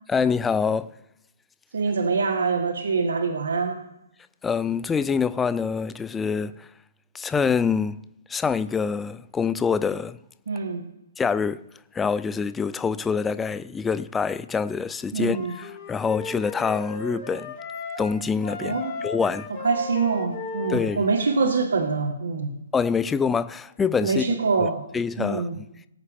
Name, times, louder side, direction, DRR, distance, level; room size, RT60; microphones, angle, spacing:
voice 1, 0.1-0.9 4.4-6.7 7.1-8.0 8.3-10.2 11.2-11.6 11.9-17.5 18.0-19.5 20.7-21.1 22.7-24.4 24.9-25.7, left 5 dB, 10° left, 0.3 m, -25 dB
voice 2, 1.7-3.8 10.5-10.8 15.1-15.6 18.6-18.9 19.6-22.6 24.0-24.8 25.2-25.5, right 4 dB, 70° right, 1.4 m, -24 dB
Wind instrument woodwind instrument, 15.2-18.1 18.4-21.6, left 4 dB, 35° left, 5.1 m, -36 dB
18.0 x 8.4 x 3.5 m
hypercardioid pair, 145°, 0 cm